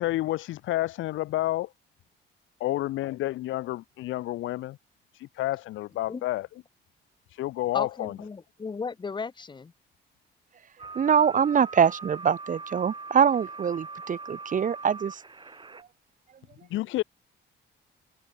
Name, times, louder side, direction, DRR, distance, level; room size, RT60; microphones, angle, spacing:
voice 1, 0.0-1.7 2.6-4.8 5.2-6.5 7.4-8.2 16.7-17.0, left 16 dB, 75° left, 0.5 m, -29 dB
voice 2, 7.7-9.7, left 5 dB, 25° left, 0.7 m, -35 dB
sound 1, 10.8-15.8, right 3 dB, 25° right, 2.5 m, -41 dB
voice 3, 10.9-15.2, right 7 dB, 40° right, 0.9 m, -24 dB
cardioid pair, 90°, 20 cm